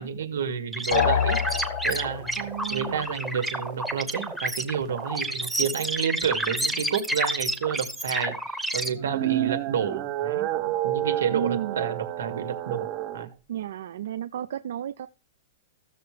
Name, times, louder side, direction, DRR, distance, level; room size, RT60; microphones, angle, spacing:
voice 1, 0.0-1.6 1.8-13.3, right 7 dB, 85° right, 2.3 m, -30 dB
sound 1, 0.7-8.9, right 1 dB, ahead, 0.9 m, -30 dB
sound 2, 0.9-2.4, left 9 dB, 55° left, 0.7 m, -25 dB
voice 2, 2.4-3.1 11.3-11.8 13.5-15.1, right 11 dB, 65° right, 0.5 m, -33 dB
sound 3, 8.9-13.3, right 14 dB, 30° right, 0.7 m, -29 dB
15.0 x 7.0 x 3.3 m
supercardioid pair, 170°, 0 cm